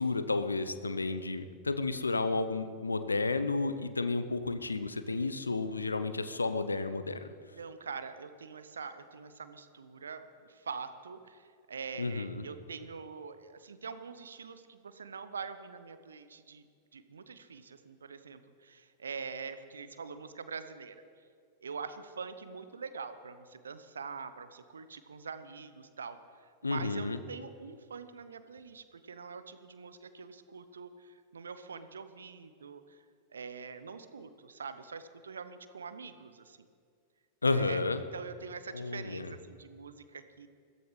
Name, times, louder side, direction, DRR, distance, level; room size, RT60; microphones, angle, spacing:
voice 1, 0.0-7.3 12.0-12.4 26.6-27.2 37.4-38.0 38.7-39.3, left 3 dB, 80° left, 10 dB, 0.8 m, -32 dB
voice 2, 7.6-16.6 16.9-20.9 21.6-26.2 26.6-33.0 33.3-36.7 37.5-37.8 38.1-40.5, right 5 dB, 70° right, 12 dB, 0.9 m, -44 dB
21.5 x 15.5 x 3.3 m, 2.2 s
figure-of-eight pair, 90°, 0 cm